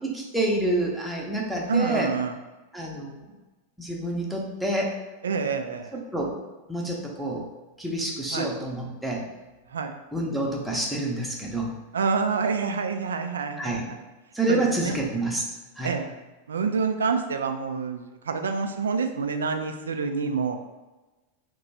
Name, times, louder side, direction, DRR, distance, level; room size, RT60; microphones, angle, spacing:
voice 1, 0.0-2.1 2.7-3.2 3.8-4.9 5.9-6.3 6.7-7.5 7.8-9.2 10.1-11.7 13.6-13.8 14.3-15.4 15.8-15.9, right 1 dB, ahead, -3 dB, 0.7 m, -28 dB
voice 2, 1.7-2.4 5.2-6.0 8.3-8.5 9.7-9.9 11.9-14.0 14.5-15.0 15.8-16.1 16.5-20.6, right 5 dB, 70° right, 6 dB, 0.3 m, -27 dB
2.9 x 2.2 x 4.1 m, 1.2 s
figure-of-eight pair, 90°, 0 cm